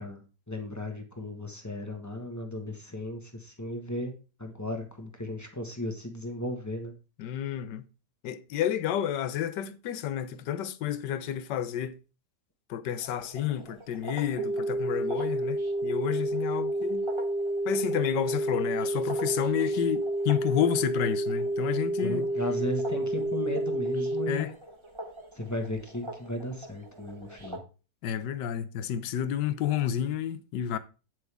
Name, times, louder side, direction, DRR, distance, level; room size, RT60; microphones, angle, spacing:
voice 1, 0.0-4.1 4.4-6.9 22.0-24.5 25.3-27.6, left 1 dB, 10° left, 1.3 m, -35 dB
voice 2, 7.2-7.8 8.2-11.9 12.7-17.0 17.7-22.3 24.3-24.5 28.0-30.8, left 10 dB, 90° left, 1.4 m, -30 dB
sound 1, 13.0-27.6, right 1 dB, 20° right, 1.0 m, -46 dB
sound 2, 14.4-24.4, right 1 dB, 70° right, 1.3 m, -29 dB
9.2 x 7.6 x 3.5 m
omnidirectional pair, 1.8 m